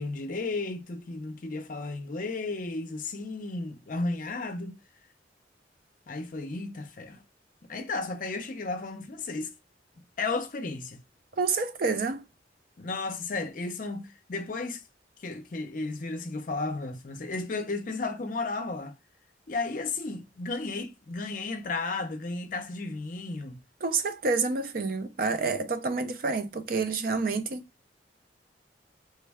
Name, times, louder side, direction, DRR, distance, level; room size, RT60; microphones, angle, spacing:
voice 1, 0.0-4.8 6.1-7.2 7.7-9.5 10.2-11.0 12.8-14.8 15.2-19.0 19.5-23.6, left 3 dB, 45° left, 0.5 m, -33 dB
voice 2, 11.4-12.2 23.8-27.6, right 4 dB, 50° right, 0.4 m, -28 dB
3.2 x 2.2 x 3.4 m
head